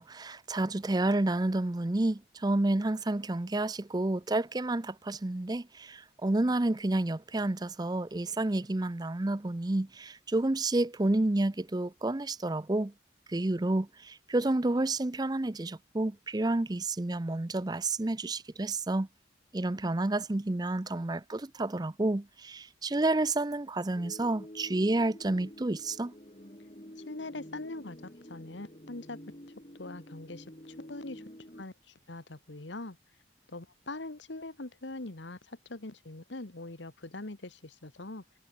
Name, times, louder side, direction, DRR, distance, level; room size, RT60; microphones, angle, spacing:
voice 1, 0.0-12.9 13.3-19.1 19.5-26.1, right 2 dB, 20° right, 0.5 m, -30 dB
sound 1, 23.9-31.6, equal, 35° left, 4.3 m, -49 dB
voice 2, 27.1-29.2 29.7-31.2 31.5-33.0 33.5-38.2, left 2 dB, 75° left, 1.6 m, -42 dB
head